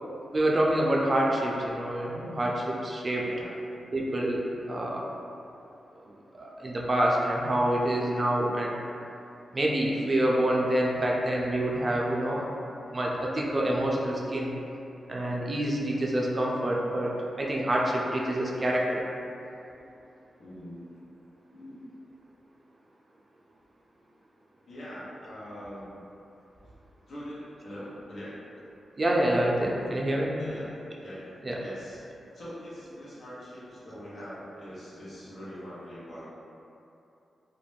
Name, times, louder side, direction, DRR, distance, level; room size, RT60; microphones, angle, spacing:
voice 1, 0.3-3.3 3.9-5.1 6.3-8.8 9.5-12.5 12.9-14.5 15.1-17.1 17.4-19.1 29.0-30.3 31.4-31.6, right 1 dB, 40° right, -3 dB, 0.4 m, -27 dB
voice 2, 3.2-3.6 19.8-19.9 20.4-20.9 21.5-21.9 24.7-26.0 27.1-28.4 30.4-30.7 31.0-31.2 31.6-32.0 32.3-36.2, equal, 70° left, -10 dB, 0.9 m, -42 dB
2.4 x 2.1 x 3.2 m, 2.8 s
cardioid pair, 50°, 0 cm